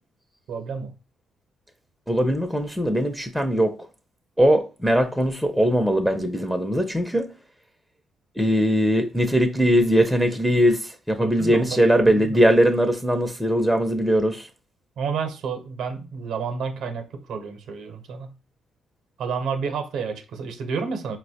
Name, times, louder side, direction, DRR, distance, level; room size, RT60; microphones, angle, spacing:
voice 1, 0.5-0.9 11.2-12.4 15.0-18.4 19.2-21.2, right 5 dB, 75° right, 0.6 m, -30 dB
voice 2, 2.1-3.7 4.4-7.3 8.4-14.5, equal, ahead, 0.4 m, -20 dB
4.2 x 2.1 x 2.7 m
cardioid pair, 90°, 0 cm